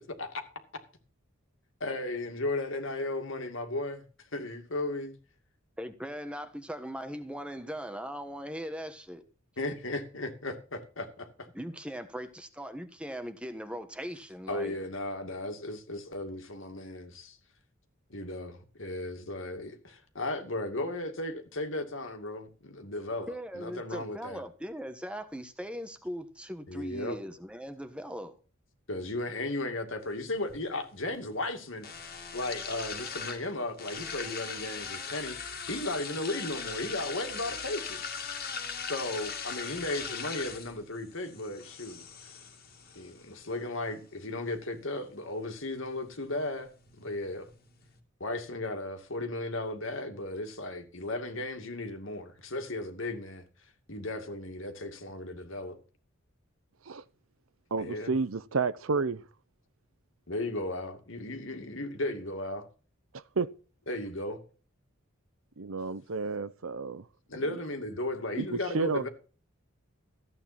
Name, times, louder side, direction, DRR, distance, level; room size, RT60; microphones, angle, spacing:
voice 1, 1.8-4.1 4.3-5.1 9.6-11.5 14.5-17.4 18.1-24.4 26.7-27.2 28.9-35.4 35.7-38.1 38.9-42.4 42.9-47.5 48.2-53.4 53.9-55.8 57.8-58.2 60.3-62.7 63.9-64.4 67.3-69.1, left 2 dB, 65° left, 2.4 m, -35 dB
voice 2, 5.8-9.2 11.5-14.7 23.3-28.4, equal, 5° right, 1.3 m, -39 dB
sound 1, 30.0-48.0, left 6 dB, 45° left, 2.4 m, -41 dB
voice 3, 57.7-59.2 63.4-63.5 65.6-67.0 67.4-67.6 68.4-69.1, right 4 dB, 80° right, 0.8 m, -31 dB
14.5 x 8.8 x 4.3 m
head